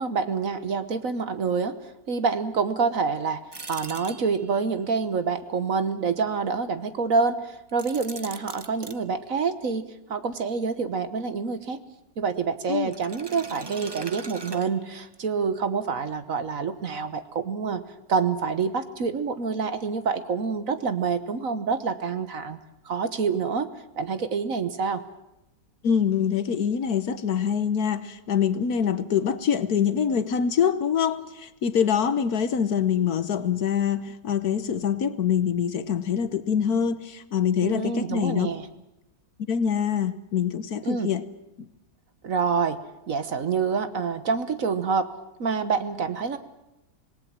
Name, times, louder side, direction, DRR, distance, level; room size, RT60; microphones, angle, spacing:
voice 1, 0.0-3.4 3.7-11.8 12.2-17.8 18.1-22.6 22.8-23.7 24.0-25.0 37.6-38.7 40.8-41.1 42.2-42.8 43.1-45.1 45.4-46.4, right 5 dB, 55° right, 1.5 m, -27 dB
sound 1, 3.5-4.7 7.7-9.0 12.9-15.2, right 3 dB, 20° right, 0.7 m, -41 dB
voice 2, 25.8-38.5 39.5-41.2 41.6-41.7, left 8 dB, 60° left, 1.4 m, -25 dB
26.5 x 19.5 x 7.5 m
omnidirectional pair, 1.9 m